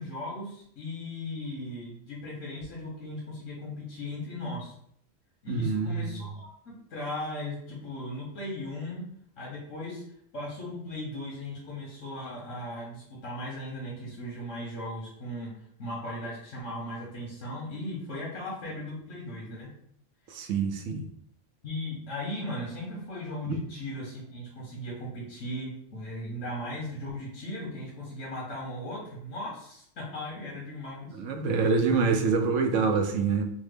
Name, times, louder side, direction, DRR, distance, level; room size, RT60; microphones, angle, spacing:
voice 1, 0.0-4.7 5.4-9.0 9.4-10.0 10.3-15.5 15.8-19.7 21.6-31.1 31.6-31.7, left 1 dB, 80° left, -5 dB, 1.4 m, -37 dB
voice 2, 5.5-6.1 20.3-21.1 23.5-23.6 31.1-33.4, right 5 dB, 80° right, 5 dB, 0.9 m, -26 dB
3.5 x 2.1 x 3.3 m, 0.67 s
omnidirectional pair, 1.3 m